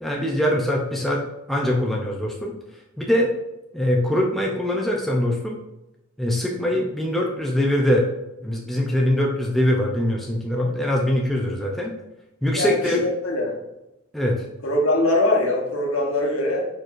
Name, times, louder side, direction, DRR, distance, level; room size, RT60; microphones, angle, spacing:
voice 1, 0.0-1.2 1.5-2.5 3.0-3.3 3.7-5.6 6.2-8.1 8.4-11.9 12.4-13.0 14.1-14.5, left 1 dB, ahead, -2 dB, 0.4 m, -22 dB
voice 2, 12.5-13.6 14.6-16.7, left 1 dB, 70° left, 0 dB, 1.0 m, -22 dB
4.5 x 4.5 x 2.4 m, 0.92 s
head